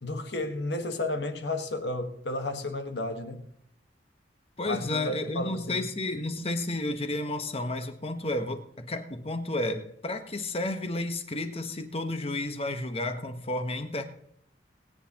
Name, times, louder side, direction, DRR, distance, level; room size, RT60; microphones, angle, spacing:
voice 1, 0.0-3.5 4.6-5.8, left 2 dB, 70° left, 1.5 m, -32 dB
voice 2, 4.6-14.1, left 2 dB, 35° left, 1.3 m, -32 dB
21.0 x 9.6 x 3.0 m
head